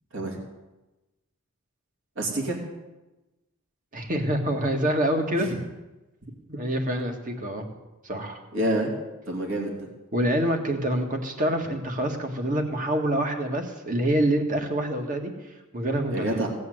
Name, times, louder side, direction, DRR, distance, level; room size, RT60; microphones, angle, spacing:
voice 1, 2.2-2.6 5.5-5.6 8.5-8.9 9.3-9.9 16.1-16.5, right 1 dB, 60° right, 0 dB, 2.9 m, -27 dB
voice 2, 3.9-5.5 6.5-7.7 8.0-8.4 10.1-15.3 15.7-16.3, right 1 dB, 35° right, 3 dB, 1.8 m, -26 dB
17.0 x 8.4 x 8.0 m, 1.1 s
head